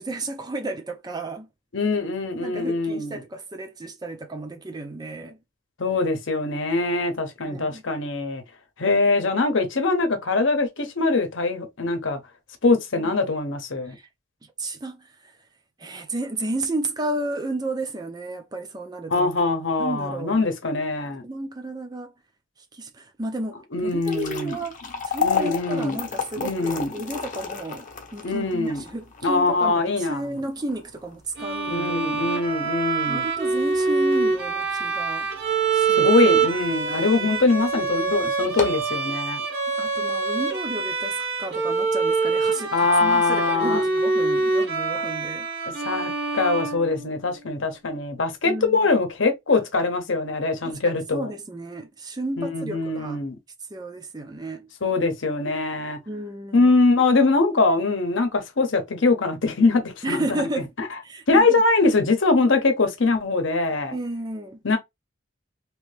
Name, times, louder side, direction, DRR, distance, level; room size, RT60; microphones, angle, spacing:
voice 1, 0.0-1.5 2.4-5.4 7.4-7.8 12.9-13.2 13.9-14.1 14.6-15.3 15.8-19.3 19.8-20.4 21.2-22.1 22.7-24.8 25.1-27.9 28.1-32.4 33.1-35.3 35.7-36.1 39.8-45.5 48.5-48.8 49.5-49.6 50.6-53.2 53.7-54.7 56.1-56.7 60.0-60.7 61.0-61.6 63.9-64.6, right 2 dB, 20° right, 0.4 m, -32 dB
voice 2, 1.7-3.2 5.8-8.4 8.8-12.2 12.6-13.9 19.1-21.2 23.7-24.5 25.2-26.0 26.4-26.9 28.2-28.8 29.2-30.2 31.7-33.2 36.0-39.4 42.7-43.8 45.8-51.3 52.4-53.3 54.8-56.0 56.5-60.5 60.8-60.9 61.3-63.9 64.6-64.8, left 3 dB, 70° left, 0.8 m, -22 dB
sound 1, 23.8-36.1 36.5-36.6 37.3-37.5 37.8-37.9 38.4-38.9, left 6 dB, 40° left, 0.8 m, -33 dB
Bowed string instrument, 31.4-47.4, right 4 dB, 50° right, 1.0 m, -25 dB
3.0 x 2.7 x 3.2 m
head